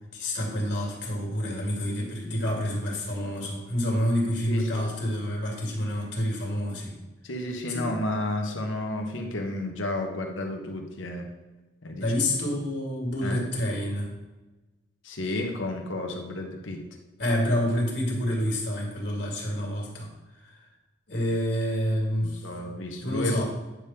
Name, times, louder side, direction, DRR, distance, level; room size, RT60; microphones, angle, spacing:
voice 1, 0.1-6.9 7.7-7.9 12.0-14.1 17.2-20.1 21.1-22.4 23.0-23.4, equal, 65° left, -2 dB, 2.3 m, -28 dB
voice 2, 4.5-4.9 7.2-11.3 11.8-12.2 13.2-13.4 15.0-16.8 22.2-23.4, left 1 dB, 90° left, 2 dB, 1.3 m, -32 dB
9.4 x 3.5 x 5.8 m, 1.1 s
head